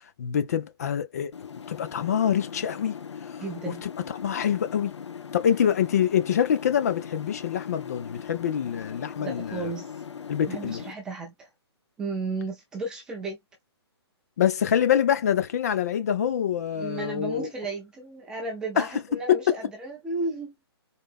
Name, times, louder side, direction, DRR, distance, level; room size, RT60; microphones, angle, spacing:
voice 1, 0.2-1.3 1.7-2.9 3.8-3.9 4.2-4.9 5.3-9.6 10.3-10.8 14.4-17.5 18.8-18.9 19.3-19.4, left 9 dB, 35° left, 0.7 m, -25 dB
sound 1, 1.3-10.9, left 7 dB, 90° left, 0.9 m, -40 dB
voice 2, 3.4-3.8 9.2-10.0 10.5-11.5 12.0-13.4 16.7-20.5, right 3 dB, 5° right, 0.5 m, -34 dB
4.0 x 2.9 x 3.6 m
hypercardioid pair, 170°, 14 cm